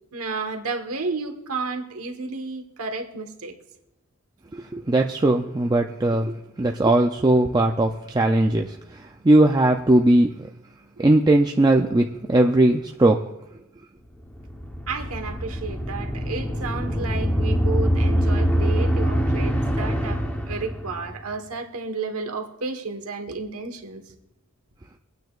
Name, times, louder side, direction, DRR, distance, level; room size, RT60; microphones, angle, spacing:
voice 1, 0.1-3.5 14.9-24.0, right 4 dB, 85° right, 5 dB, 1.3 m, -32 dB
voice 2, 4.5-10.5 11.0-13.3, right 1 dB, 20° right, 2 dB, 0.4 m, -19 dB
sound 1, 14.2-21.2, equal, 5° left, 0.9 m, -24 dB
23.0 x 9.2 x 2.4 m, 0.90 s
head